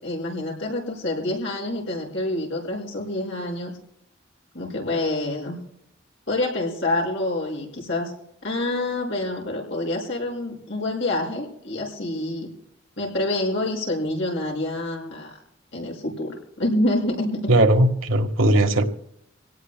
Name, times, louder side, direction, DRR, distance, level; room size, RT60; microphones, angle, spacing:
voice 1, 0.0-3.7 4.5-5.6 6.3-8.1 8.4-12.5 13.0-15.4 15.7-17.4 18.4-18.6, left 1 dB, 70° left, -1 dB, 5.7 m, -27 dB
voice 2, 17.5-18.9, right 1 dB, 90° right, 5 dB, 1.5 m, -18 dB
26.5 x 18.0 x 2.2 m, 0.75 s
head